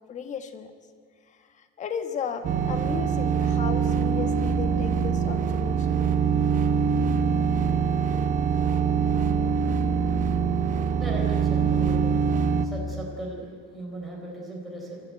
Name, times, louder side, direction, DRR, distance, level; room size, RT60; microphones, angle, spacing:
voice 1, 0.1-0.7 1.3-5.9 6.9-7.1, left 6 dB, 25° left, 8 dB, 1.4 m, -35 dB
sound 1, 2.4-12.7, right 6 dB, 25° right, 1.0 m, -24 dB
voice 2, 11.0-12.1 12.6-15.0, right 1 dB, ahead, -5 dB, 4.7 m, -37 dB
27.0 x 14.0 x 9.1 m, 2.1 s
cardioid pair, 165°, 30 cm